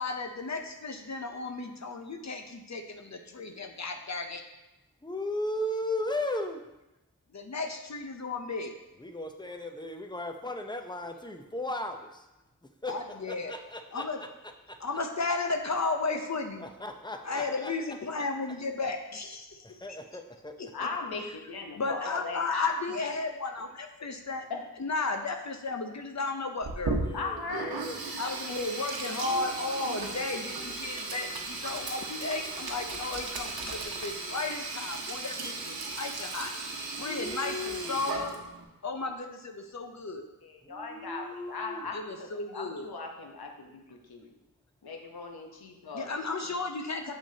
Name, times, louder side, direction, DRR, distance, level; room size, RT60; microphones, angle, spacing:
voice 1, 0.0-4.4 7.3-8.7 12.9-13.5 13.9-14.2 14.8-16.6 17.2-19.7 20.6-20.7 21.8-24.5 24.8-27.0 28.2-36.5 37.0-38.3 38.8-40.2 41.9-42.9 45.9-47.1, left 3 dB, 50° left, 5 dB, 0.7 m, -34 dB
voice 2, 5.0-6.6 9.0-12.2 12.8-12.9 13.3-14.1 14.7-14.8 16.6-17.7 19.6-20.5 20.8-20.9 27.0-28.0 37.0-38.0 40.6-41.9, left 1 dB, 10° left, 5 dB, 0.7 m, -36 dB
voice 3, 20.7-22.7 24.5-24.6 27.1-27.8 28.2-28.3 40.4-42.3 42.5-44.3 44.8-46.3 47.1-47.2, left 4 dB, 80° left, 2 dB, 1.0 m, -38 dB
Sink (filling or washing), 26.6-38.6, right 3 dB, 75° right, 1.0 m, -36 dB
7.1 x 6.0 x 2.8 m, 0.96 s
cardioid pair, 45°, 37 cm